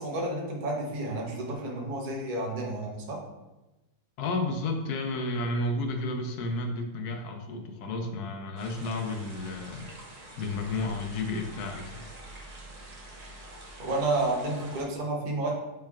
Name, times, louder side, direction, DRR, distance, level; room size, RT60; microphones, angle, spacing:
voice 1, 0.0-3.2 13.8-15.5, right 2 dB, 40° right, -2 dB, 0.8 m, -31 dB
voice 2, 4.2-9.9 10.4-12.1, left 2 dB, 75° left, 4 dB, 1.1 m, -32 dB
sound 1, 8.6-14.8, right 1 dB, 60° right, 0.4 m, -46 dB
6.5 x 3.3 x 2.3 m, 1.0 s
omnidirectional pair, 1.8 m